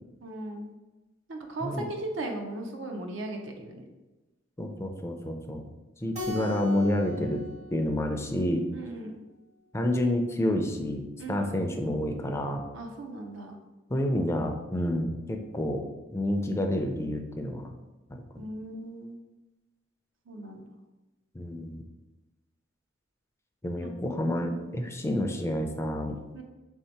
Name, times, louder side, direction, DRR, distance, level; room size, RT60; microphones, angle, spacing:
voice 1, 0.2-0.7 1.3-3.9 8.7-9.2 11.2-11.7 12.7-13.6 18.4-19.2 20.3-20.7 23.8-23.9 24.5-24.8 26.3-26.4, right 2 dB, 85° right, 3 dB, 0.7 m, -37 dB
voice 2, 4.6-5.7 6.0-7.4 7.7-8.6 9.7-12.6 13.9-15.8 16.1-17.7 18.1-18.4 21.3-21.8 23.6-26.2, left 1 dB, 15° left, 4 dB, 0.3 m, -29 dB
Keyboard (musical), 6.1-8.8, left 1 dB, 35° right, 0.6 m, -39 dB
3.4 x 2.7 x 4.4 m, 1.1 s
head